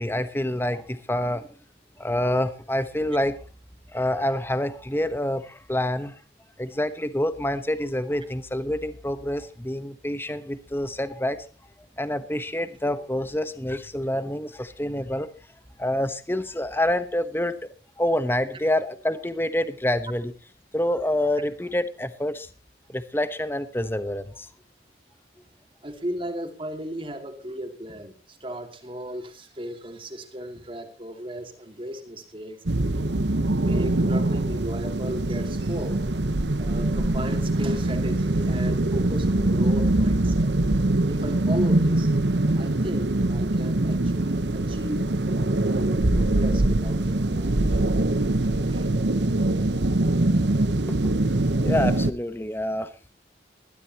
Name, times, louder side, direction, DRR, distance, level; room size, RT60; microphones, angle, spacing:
voice 1, 0.0-1.5 2.0-3.4 3.9-6.2 6.6-11.5 12.0-15.3 15.8-20.3 20.7-22.5 22.9-24.5 50.9-51.2 51.6-52.9, left 1 dB, 10° left, 12 dB, 1.1 m, -27 dB
voice 2, 25.8-32.6 33.2-36.0 36.6-40.5 41.1-42.1 42.6-47.8 48.7-48.9, equal, 30° right, 5 dB, 2.8 m, -35 dB
sound 1, 32.7-52.1, right 2 dB, 70° right, 1.1 m, -23 dB
21.0 x 13.5 x 3.0 m, 0.35 s
head